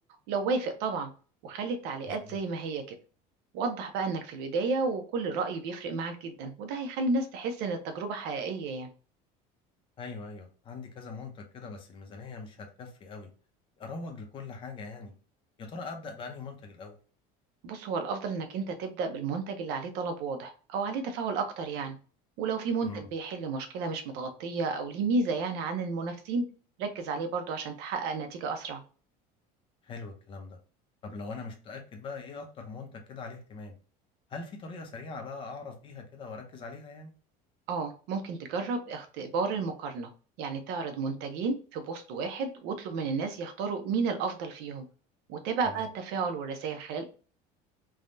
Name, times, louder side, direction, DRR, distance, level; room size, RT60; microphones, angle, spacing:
voice 1, 0.3-1.1 1.4-3.0 3.5-8.9 17.6-22.0 22.4-26.4 26.8-28.8 37.7-40.1 40.4-44.8 45.3-47.0, right 4 dB, 65° right, 6 dB, 0.7 m, -32 dB
voice 2, 2.1-2.4 10.0-13.3 13.8-15.1 15.6-17.0 22.8-23.1 29.8-30.6 31.0-33.7 34.3-37.1 45.6-45.9, left 4 dB, 30° left, 4 dB, 0.6 m, -42 dB
3.4 x 2.2 x 2.5 m, 0.38 s
cardioid pair, 165°, 18 cm